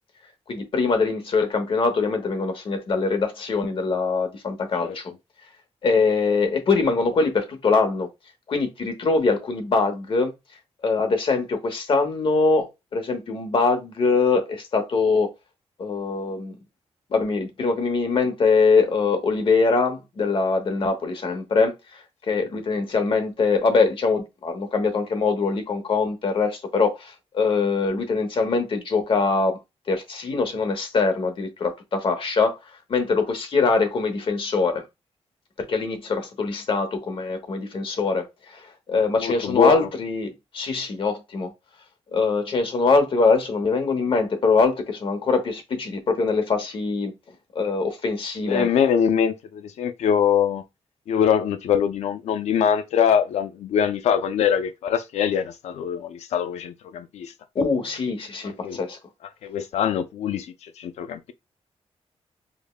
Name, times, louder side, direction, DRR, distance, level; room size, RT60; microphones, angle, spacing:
voice 1, 0.5-5.1 5.8-8.1 8.5-10.3 10.8-15.3 15.8-16.6 17.1-29.6 29.9-32.6 32.9-34.8 35.6-41.5 42.1-47.1 47.5-48.7 57.5-59.0, left 4 dB, 50° left, 0.9 m, -23 dB
voice 2, 39.2-39.8 48.5-50.6 51.1-57.3 58.4-58.8 59.4-61.3, left 8 dB, 85° left, 0.4 m, -23 dB
5.0 x 2.2 x 2.3 m
wide cardioid pair, 120°, 11 cm